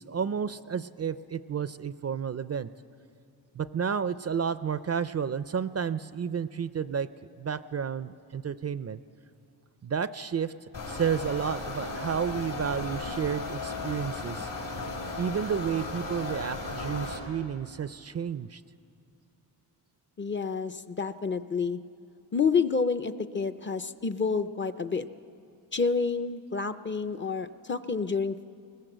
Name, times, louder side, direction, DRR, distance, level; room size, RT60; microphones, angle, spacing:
voice 1, 0.0-2.7 3.5-7.1 7.4-9.0 9.8-10.5 10.9-14.5 15.2-18.6, right 7 dB, 40° right, 14 dB, 0.4 m, -31 dB
sound 1, 10.7-17.2, left 3 dB, 75° left, 4.6 m, -35 dB
voice 2, 20.2-21.8 22.3-25.1 25.7-28.4, left 5 dB, 30° left, 10 dB, 0.5 m, -29 dB
21.5 x 19.5 x 7.9 m, 2.5 s
wide cardioid pair, 135°, 42 cm